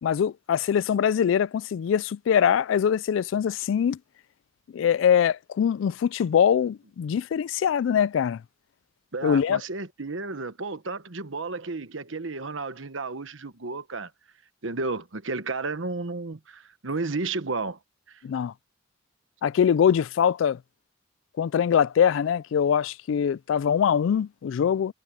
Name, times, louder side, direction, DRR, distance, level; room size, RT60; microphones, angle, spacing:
voice 1, 0.0-4.0 4.7-8.4 9.2-9.6 18.2-18.5 19.4-20.6 21.4-24.9, left 8 dB, 75° left, 0.3 m, -23 dB
voice 2, 9.1-14.1 14.6-17.8 18.1-18.2, right 3 dB, 75° right, 1.2 m, -32 dB
head